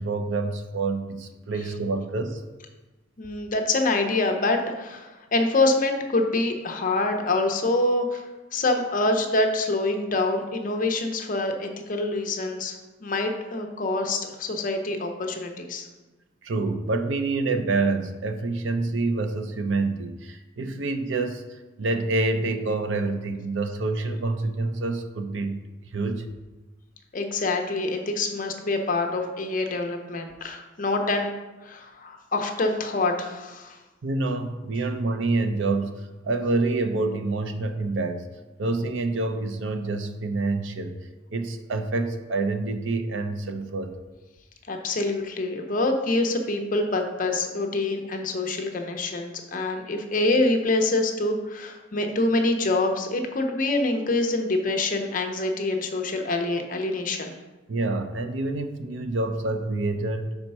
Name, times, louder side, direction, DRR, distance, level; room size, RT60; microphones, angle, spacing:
voice 1, 0.0-2.4 16.4-25.6 25.9-26.3 34.0-38.3 38.6-40.9 41.3-43.9 57.7-60.3, right 3 dB, 70° right, 7 dB, 0.6 m, -27 dB
voice 2, 3.2-8.2 8.5-15.9 27.1-31.3 31.6-33.8 44.7-57.3, left 2 dB, 45° left, 4 dB, 0.7 m, -26 dB
5.3 x 4.5 x 5.4 m, 1.1 s
head